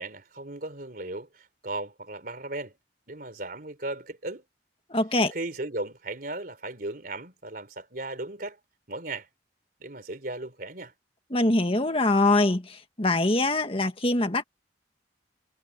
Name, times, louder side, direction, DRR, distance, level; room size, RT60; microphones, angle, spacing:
voice 1, 0.0-2.7 3.1-4.4 5.3-8.6 8.9-9.3 9.8-10.9, right 2 dB, 50° right, 3.8 m, -36 dB
voice 2, 4.9-5.3 11.3-14.4, left 2 dB, 30° left, 1.8 m, -23 dB
head